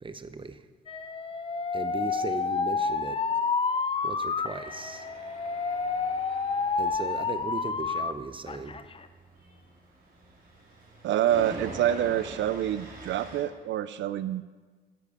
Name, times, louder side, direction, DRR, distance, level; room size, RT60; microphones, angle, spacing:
voice 1, 0.0-0.6 1.7-3.2 4.0-5.1 6.8-8.8, right 4 dB, 25° right, 11 dB, 0.9 m, -37 dB
Alarm, 0.9-8.1 8.5-9.0, left 5 dB, 30° left, 0.6 m, -29 dB
Tools, 4.5-13.4, right 2 dB, 55° right, 3.7 m, -46 dB
voice 2, 11.0-14.4, right 11 dB, 85° right, 14 dB, 0.5 m, -27 dB
10.5 x 8.3 x 8.4 m, 1.4 s
cardioid pair, 90°, 19 cm